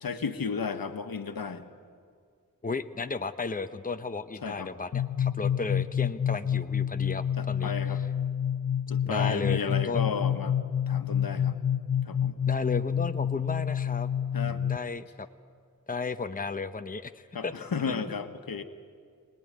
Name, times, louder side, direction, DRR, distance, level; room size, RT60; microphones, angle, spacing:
voice 1, 0.0-1.6 4.4-4.7 7.4-8.0 8.9-10.6 10.9-11.6 12.1-12.4 14.3-14.6 17.3-18.6, left 5 dB, 85° left, 8 dB, 1.4 m, -33 dB
voice 2, 2.6-8.0 9.1-10.1 12.5-14.1 14.4-15.3 15.9-17.5 17.9-18.1, left 4 dB, 25° left, 9 dB, 0.9 m, -34 dB
sound 1, 4.9-14.8, left 9 dB, 65° left, 0.7 m, -28 dB
25.0 x 19.5 x 9.8 m, 2.2 s
wide cardioid pair, 75°, 34 cm